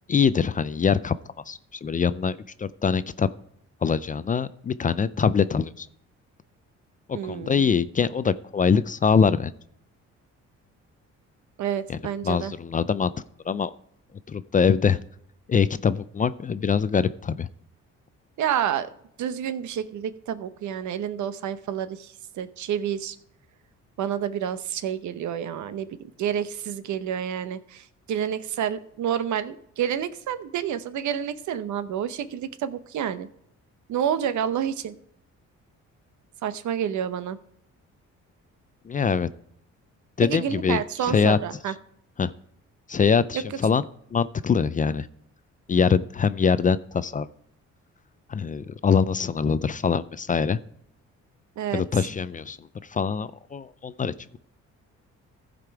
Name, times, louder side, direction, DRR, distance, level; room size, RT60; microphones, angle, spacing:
voice 1, 0.1-1.1 1.5-3.3 3.8-5.9 7.2-9.5 11.9-12.0 12.2-13.1 13.5-13.7 14.3-15.0 15.5-17.5 38.9-39.3 40.2-40.8 41.1-41.4 42.2-42.3 42.9-43.8 44.1-45.1 45.7-47.3 48.3-50.6 51.7-52.6 52.9-54.4, left 6 dB, 25° left, 15 dB, 0.4 m, -23 dB
voice 2, 7.1-7.7 11.6-12.5 18.4-18.9 19.2-23.2 24.0-25.9 26.2-33.3 33.9-34.9 36.4-37.4 40.2-41.7 43.3-43.6 51.6-51.8, right 9 dB, 70° right, 13 dB, 0.8 m, -29 dB
15.0 x 5.1 x 4.7 m, 0.71 s
cardioid pair, 90°, 30 cm